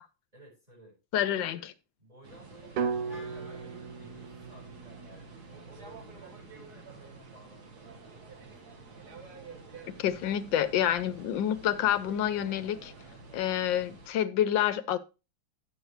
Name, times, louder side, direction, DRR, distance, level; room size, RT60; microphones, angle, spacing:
voice 1, 0.3-1.0 2.0-8.4, right 1 dB, 20° right, 5.0 m, -55 dB
voice 2, 1.1-1.7 10.0-12.9 13.3-15.0, left 10 dB, 75° left, 1.3 m, -28 dB
sound 1, 2.2-14.1, right 3 dB, 55° right, 2.1 m, -49 dB
sound 2, 2.8-6.8, right 5 dB, 70° right, 1.5 m, -37 dB
Wind instrument woodwind instrument, 3.1-7.3, equal, 35° right, 4.5 m, -56 dB
11.0 x 7.8 x 3.2 m
omnidirectional pair, 2.1 m